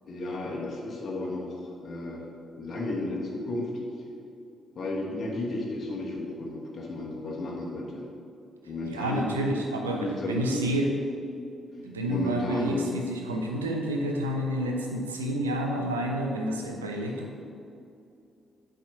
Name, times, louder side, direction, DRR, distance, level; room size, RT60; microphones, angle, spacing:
voice 1, 0.0-2.2 2.6-3.7 4.7-8.1 8.7-9.3 10.0-10.6 12.1-12.8, left 2 dB, 45° left, -3 dB, 1.1 m, -33 dB
voice 2, 8.8-10.9 11.8-17.3, right 1 dB, 85° right, 1 dB, 0.6 m, -29 dB
8.5 x 3.5 x 5.7 m, 2.5 s
figure-of-eight pair, 40°, 0 cm